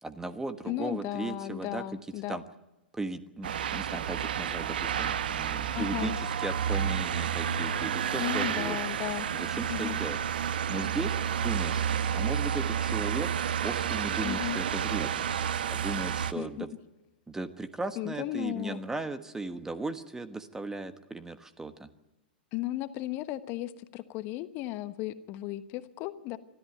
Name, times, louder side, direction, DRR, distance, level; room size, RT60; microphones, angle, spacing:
voice 1, 0.0-1.8 2.3-2.4 2.9-8.8 9.3-11.8 12.1-13.3 13.6-15.3 15.7-16.7 17.3-21.9, right 2 dB, 10° right, 11 dB, 1.3 m, -37 dB
voice 2, 0.7-2.4 5.7-6.2 8.2-9.3 9.7-10.0 14.2-14.6 16.3-16.6 18.0-18.8 22.5-26.4, left 15 dB, 40° left, 12 dB, 1.2 m, -35 dB
sound 1, 3.4-16.3, right 8 dB, 70° right, 1.1 m, -30 dB
24.0 x 13.5 x 9.2 m, 0.99 s
figure-of-eight pair, 100°, 5 cm